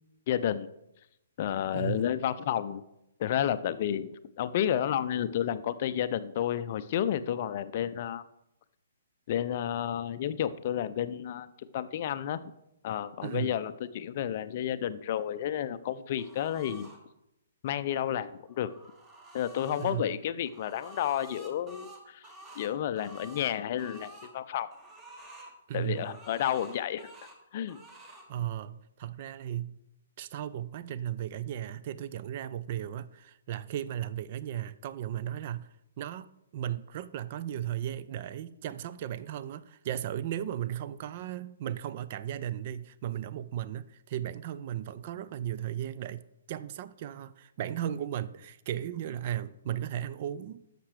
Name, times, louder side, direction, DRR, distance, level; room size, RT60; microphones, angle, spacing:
voice 1, 0.3-0.7 1.4-2.8 3.2-4.1 4.4-8.2 9.3-11.5 11.7-12.4 12.8-16.9 17.6-18.7 19.3-22.2 22.6-24.7 25.7-27.1 27.5-27.8, left 10 dB, 40° left, 0.4 m, -31 dB
voice 2, 1.7-2.1 13.2-13.6 19.8-20.2 25.7-26.2 28.3-29.8 30.2-35.7 36.0-50.6, right 11 dB, 40° right, 0.3 m, -36 dB
sound 1, 16.2-17.0 18.4-20.0 20.5-24.3 24.7-25.5 25.9-27.4 27.7-28.3, right 1 dB, 15° right, 1.4 m, -50 dB
11.0 x 6.7 x 3.2 m
figure-of-eight pair, 120°, 0 cm